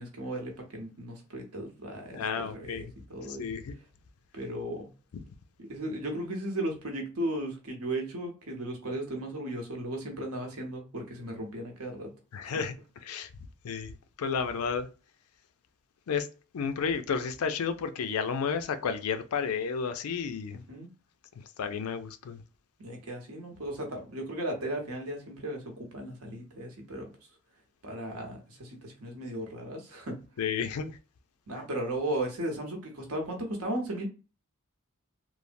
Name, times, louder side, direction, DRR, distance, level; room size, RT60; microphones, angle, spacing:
voice 1, 0.0-3.5 4.3-4.9 5.6-12.1 20.7-20.9 22.8-27.1 27.8-30.2 31.5-34.1, right 1 dB, 85° right, 0.9 m, -36 dB
voice 2, 2.1-2.8 3.3-3.7 12.3-12.7 13.0-13.3 13.6-14.9 16.1-16.3 16.5-20.6 21.6-22.4 30.4-30.9, left 6 dB, 80° left, 0.4 m, -31 dB
3.2 x 2.0 x 2.5 m
head